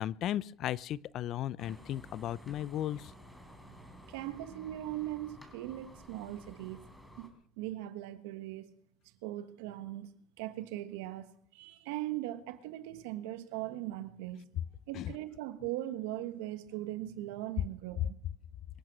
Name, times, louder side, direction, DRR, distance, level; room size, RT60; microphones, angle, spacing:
voice 1, 0.0-3.1 14.9-15.1, left 12 dB, 50° left, 0.5 m, -35 dB
sound 1, 1.6-7.3, equal, 5° left, 4.1 m, -53 dB
voice 2, 4.1-6.9 7.2-7.3 7.6-8.7 9.2-10.1 10.4-14.5 14.9-18.2, right 14 dB, 85° right, 1.4 m, -40 dB
24.0 x 9.3 x 6.2 m
supercardioid pair, 115°, 0 cm